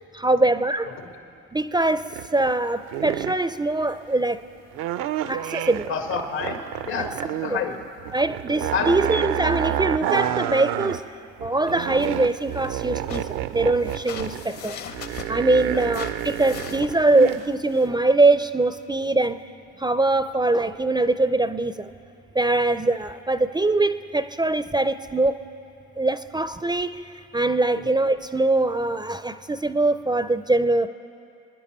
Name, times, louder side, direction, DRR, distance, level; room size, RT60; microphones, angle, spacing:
voice 1, 0.1-0.9 1.5-4.4 5.3-5.9 7.0-7.1 7.5-7.6 8.1-11.0 11.4-14.9 15.3-19.4 19.8-21.9 22.3-25.4 26.0-27.0 27.3-30.9, right 2 dB, 15° right, 12 dB, 0.4 m, -22 dB
sound 1, 2.0-2.6 2.9-3.5 4.7-7.5 7.8-11.0 11.4-17.4 17.8-18.0, right 12 dB, 70° right, 0.6 m, -29 dB
voice 2, 5.9-6.6 6.8-7.8 8.7-8.9 15.7-15.8 27.7-27.8, left 6 dB, 80° left, 4 dB, 2.0 m, -28 dB
sound 2, 11.7-17.9, left 7 dB, 55° left, 1.1 m, -41 dB
25.5 x 10.0 x 4.3 m, 2.6 s
hypercardioid pair, 60°, 34 cm